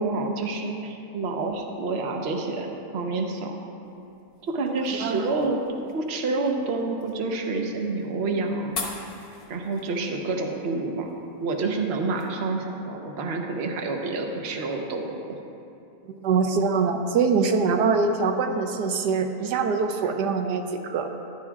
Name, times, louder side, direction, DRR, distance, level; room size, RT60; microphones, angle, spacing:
voice 1, 0.0-3.6 4.5-5.6 5.9-8.8 9.5-11.1 11.4-15.2 20.0-20.1, right 3 dB, 45° right, 2 dB, 1.0 m, -28 dB
sound 1, 3.8-12.3, left 3 dB, 65° left, 1.8 m, -43 dB
voice 2, 4.9-5.3 16.2-21.1, right 5 dB, 85° right, 5 dB, 1.3 m, -24 dB
15.0 x 11.5 x 2.4 m, 2.7 s
omnidirectional pair, 1.8 m